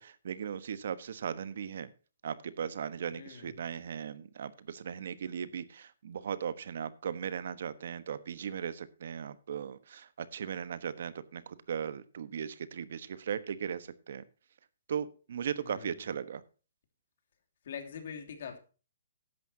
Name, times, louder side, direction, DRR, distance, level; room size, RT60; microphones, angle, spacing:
voice 1, 0.0-1.9 2.2-14.2 14.9-16.4, right 8 dB, 55° right, 15 dB, 1.2 m, -38 dB
voice 2, 3.1-3.5 15.6-16.0 17.6-18.6, left 7 dB, 50° left, 4 dB, 2.9 m, -43 dB
14.0 x 11.0 x 2.8 m, 0.35 s
hypercardioid pair, 170°, 0 cm